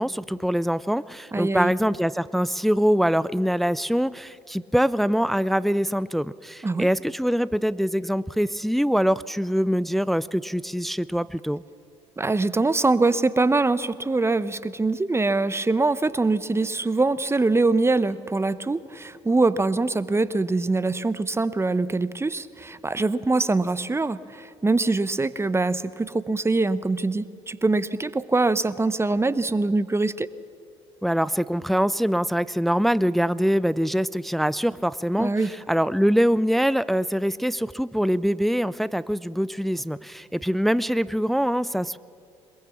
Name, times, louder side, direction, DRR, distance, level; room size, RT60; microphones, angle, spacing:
voice 1, 0.0-11.6 31.0-42.0, equal, ahead, 18 dB, 0.5 m, -24 dB
voice 2, 1.3-1.7 6.6-6.9 12.2-30.3 35.2-35.5, right 3 dB, 20° right, 15 dB, 1.0 m, -23 dB
22.0 x 22.0 x 7.1 m, 2.4 s
hypercardioid pair, 55°, 14 cm